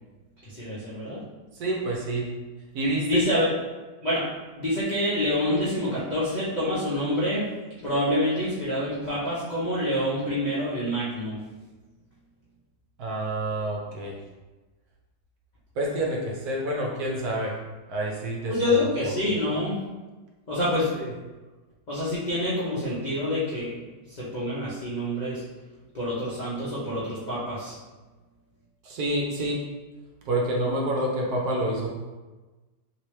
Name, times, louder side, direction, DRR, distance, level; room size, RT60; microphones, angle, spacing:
voice 1, 0.5-1.2 3.1-3.5 4.0-4.2 4.5-7.5 7.8-11.4 18.5-19.8 20.5-20.9 21.9-23.8 24.1-25.4 25.9-27.8, left 1 dB, 60° left, -9 dB, 0.4 m, -27 dB
voice 2, 1.5-2.3 2.7-3.2 13.0-14.2 15.8-17.6 17.9-18.5 21.0-21.1 28.8-29.6 30.3-31.9, right 1 dB, 70° right, -2 dB, 1.0 m, -28 dB
3.0 x 2.9 x 3.1 m, 1.2 s
omnidirectional pair, 1.9 m